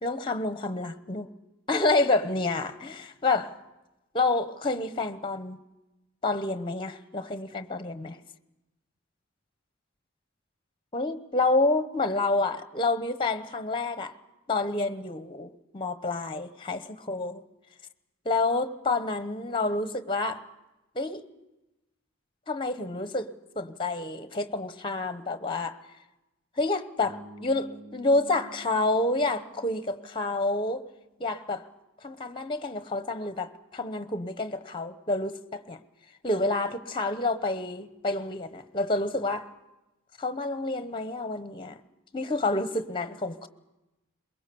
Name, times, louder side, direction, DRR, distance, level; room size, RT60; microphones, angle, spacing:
voice 1, 0.0-1.3 1.7-3.5 4.1-5.6 6.2-8.2 10.9-14.1 14.5-17.4 18.2-20.4 20.9-21.2 22.5-23.3 23.5-25.8 26.6-30.8 31.2-31.6 32.0-35.8 36.2-39.5 40.2-41.8 42.1-43.5, left 2 dB, 25° left, 1.0 m, -28 dB
Bass guitar, 27.0-31.1, right 1 dB, 70° right, 1.8 m, -50 dB
23.0 x 22.0 x 7.0 m
head